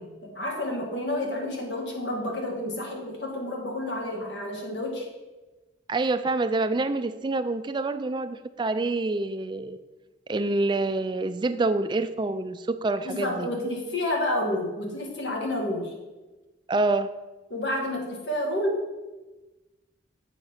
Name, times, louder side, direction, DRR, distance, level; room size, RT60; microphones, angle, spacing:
voice 1, 0.0-5.1 13.1-15.9 17.5-18.9, left 1 dB, 80° left, 1 dB, 1.8 m, -30 dB
voice 2, 5.9-9.8 10.3-13.5 16.7-17.1, right 2 dB, 25° right, 11 dB, 0.4 m, -27 dB
7.8 x 5.0 x 5.6 m, 1.2 s
head